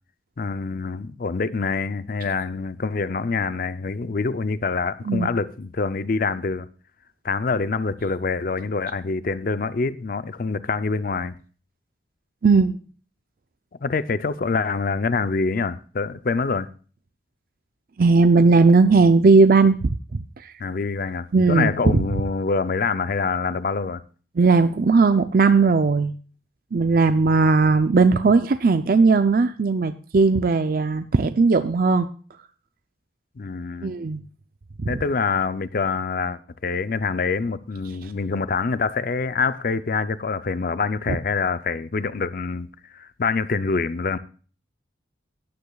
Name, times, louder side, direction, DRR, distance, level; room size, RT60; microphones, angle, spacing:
voice 1, 0.4-6.7 7.2-11.3 13.8-16.7 20.6-24.0 33.4-33.9 34.9-42.7 42.9-44.2, left 4 dB, 50° left, 0.5 m, -25 dB
voice 2, 12.4-12.8 18.0-19.9 20.4-20.5 21.3-22.0 24.4-26.1 26.7-32.1 33.8-34.2 34.8-34.9 38.0-38.1 41.1-41.2, right 4 dB, 50° right, 0.5 m, -17 dB
16.5 x 9.7 x 2.3 m
head